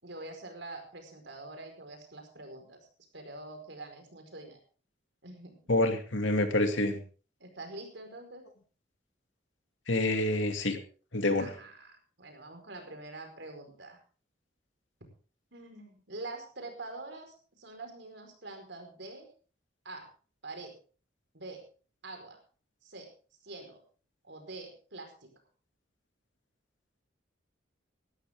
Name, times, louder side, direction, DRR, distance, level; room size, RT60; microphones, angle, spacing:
voice 1, 0.0-2.8 3.1-4.6 5.2-5.6 7.4-8.4 11.4-14.0 15.5-19.3 19.8-20.1 20.4-20.8 21.3-21.6 22.0-22.4 22.8-23.1 23.4-23.8 24.2-25.3, right 2 dB, 65° right, 5 dB, 4.8 m, -45 dB
voice 2, 5.7-7.0 9.9-10.8 11.1-11.5, left 2 dB, 85° left, 6 dB, 2.4 m, -27 dB
18.0 x 13.0 x 3.7 m, 0.39 s
head